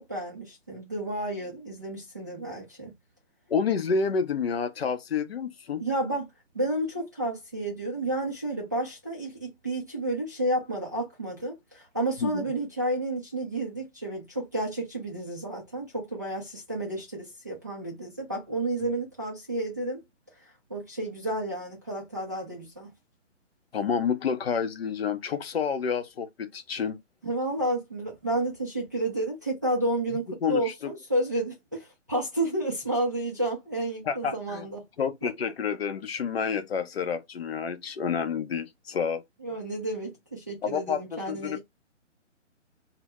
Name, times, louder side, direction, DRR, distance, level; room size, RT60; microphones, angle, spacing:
voice 1, 0.0-2.9 5.8-6.3 6.5-20.0 20.7-22.9 27.2-34.8 35.2-35.3 39.4-41.6, right 1 dB, 15° right, 0.4 m, -31 dB
voice 2, 3.5-5.8 12.2-12.4 23.7-27.0 30.4-30.9 34.0-34.7 35.0-39.2 40.6-41.6, left 6 dB, 55° left, 0.6 m, -29 dB
2.0 x 2.0 x 3.2 m
figure-of-eight pair, 140°, 37 cm